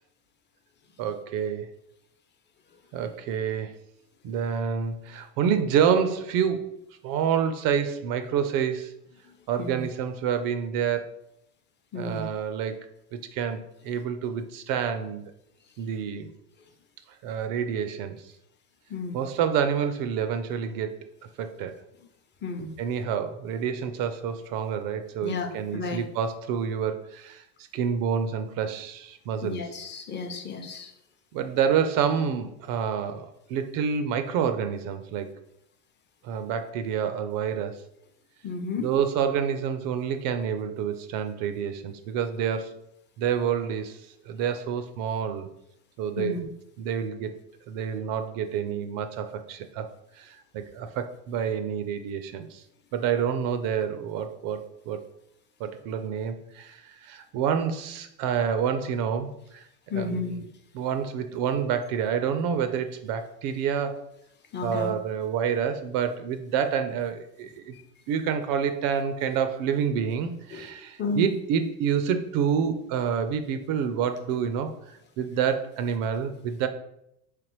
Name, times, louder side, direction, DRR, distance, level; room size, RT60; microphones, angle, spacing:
voice 1, 1.0-1.7 2.9-3.8 4.2-6.8 7.0-8.9 9.5-11.2 11.9-12.9 13.1-15.2 15.8-16.3 17.2-18.3 19.1-21.0 21.4-21.7 22.8-27.4 27.7-29.6 31.3-35.3 36.2-37.8 38.8-42.8 43.2-44.0 44.3-45.5 46.0-46.5 46.8-47.4 47.7-49.9 50.1-52.6 52.9-55.0 55.6-59.6 59.9-60.5 60.7-64.1 64.6-67.7 68.1-74.7 75.2-76.7, right 7 dB, 60° right, 9 dB, 0.5 m, -28 dB
voice 2, 11.9-12.3 18.9-19.2 22.4-22.7 25.2-26.0 29.4-30.9 38.4-38.9 46.2-46.4 59.9-60.3 64.5-64.9 67.7-67.8 70.5-70.6 71.0-71.2, left 4 dB, 30° left, 5 dB, 0.6 m, -32 dB
3.4 x 3.3 x 3.0 m, 0.78 s
supercardioid pair, 100°, 38 cm